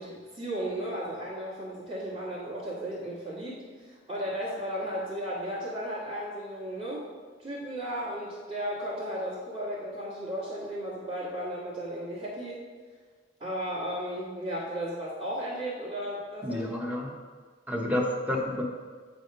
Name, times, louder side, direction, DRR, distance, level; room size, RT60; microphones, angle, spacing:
voice 1, 0.0-7.0 7.4-12.6 13.4-16.8, equal, 35° right, -11 dB, 1.5 m, -35 dB
voice 2, 16.4-17.1 17.7-18.6, left 1 dB, 10° right, 0 dB, 0.9 m, -29 dB
8.5 x 3.5 x 5.3 m, 1.5 s
head